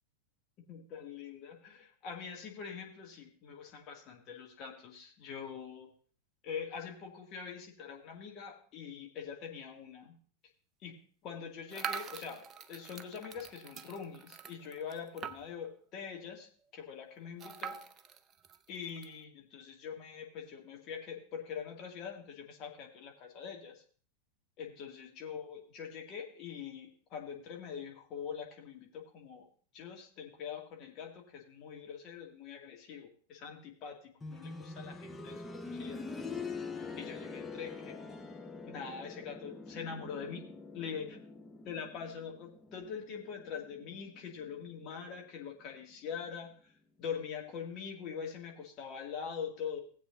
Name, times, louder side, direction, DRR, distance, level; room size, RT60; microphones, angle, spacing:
voice 1, 0.7-5.9 6.4-10.1 10.8-11.0 11.2-12.4 12.7-17.8 18.7-23.8 24.6-29.4 29.7-36.1 37.0-38.2 38.7-40.5 40.7-41.2 41.7-46.5 47.0-49.8, left 7 dB, 35° left, 0 dB, 2.4 m, -43 dB
sound 1, 11.7-15.7 16.1-16.2 16.4-16.5 17.4-19.1, right 7 dB, 25° right, 0.6 m, -44 dB
sound 2, 34.2-45.0 46.3-46.4, left 4 dB, 10° left, 0.9 m, -45 dB
18.0 x 8.0 x 2.7 m, 0.43 s
figure-of-eight pair, 90°, 0 cm